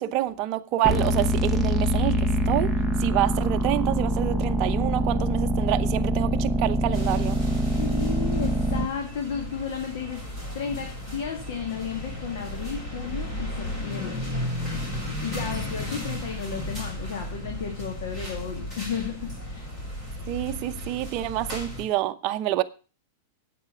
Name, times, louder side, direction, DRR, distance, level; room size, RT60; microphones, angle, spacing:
voice 1, 0.0-2.7 3.0-7.4 20.3-22.6, right 14 dB, 35° right, 0.8 m, -27 dB
sound 1, 0.8-8.9, right 1 dB, 5° left, 1.1 m, -24 dB
sound 2, 6.9-21.8, left 1 dB, 20° left, 4.3 m, -35 dB
voice 2, 7.8-14.2 15.2-19.7, left 7 dB, 65° left, 2.5 m, -33 dB
8.6 x 8.5 x 6.9 m
supercardioid pair, 160°, 0 cm